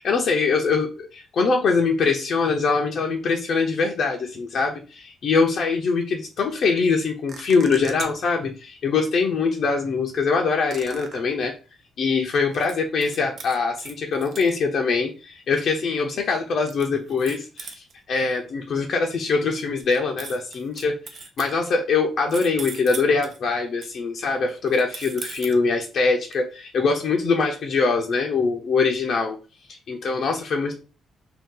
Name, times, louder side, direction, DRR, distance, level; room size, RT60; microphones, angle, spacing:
voice 1, 0.0-11.5 12.0-29.4 29.7-30.7, left 4 dB, 60° left, 1 dB, 0.5 m, -23 dB
sound 1, 7.3-8.3 10.7-11.2 12.3-12.8 13.0-14.5 16.5-17.9 19.8-21.5 22.3-23.4 23.8-23.9 24.7-25.6 26.3-26.4, right 5 dB, 55° right, 0.5 m, -38 dB
2.7 x 2.2 x 3.7 m, 0.32 s
cardioid pair, 90°, 0 cm